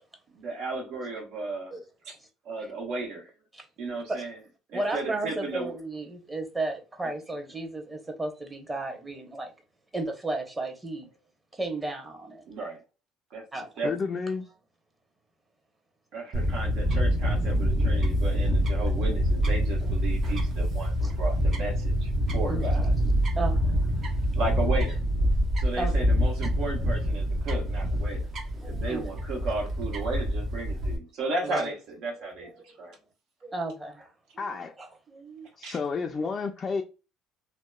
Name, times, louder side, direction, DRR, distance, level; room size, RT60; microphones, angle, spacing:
voice 1, 0.3-1.8 2.1-2.2 2.4-3.3 3.8-4.4 4.7-5.7 12.5-12.8 13.3-13.4 13.8-13.9 16.1-22.9 24.3-25.0 25.6-28.3 28.7-33.0 35.6-35.8, right 3 dB, 70° right, 1.1 m, -34 dB
voice 2, 4.7-9.5 9.9-11.1 11.5-12.5 13.5-13.7 21.0-21.1 22.5-22.7 23.4-23.8 25.8-26.0 28.6-29.1 29.4-29.5 31.4-31.7 32.1-32.9 33.4-35.5, right 2 dB, 20° right, 1.0 m, -34 dB
voice 3, 13.8-14.5 34.4-34.7 35.6-36.8, left 4 dB, 35° left, 0.4 m, -30 dB
Fowl / Bird, 16.3-31.0, equal, 50° right, 0.8 m, -26 dB
2.8 x 2.1 x 2.2 m
supercardioid pair, 80°, 0 cm